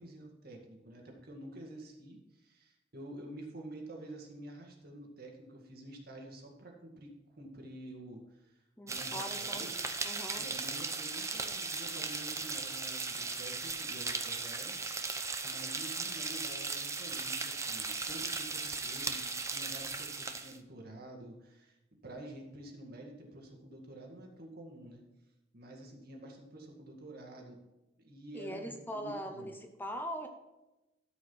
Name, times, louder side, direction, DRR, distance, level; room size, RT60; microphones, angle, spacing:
voice 1, 0.0-9.7 10.3-21.8 22.0-25.0 25.5-27.6 28.0-29.5, right 1 dB, 55° right, 1 dB, 2.1 m, -49 dB
voice 2, 8.8-9.7 10.0-10.5 28.3-30.3, equal, 10° left, 5 dB, 0.8 m, -41 dB
sound 1, 8.9-20.6, right 4 dB, 15° right, 0.7 m, -37 dB
13.0 x 5.2 x 5.5 m, 0.98 s
head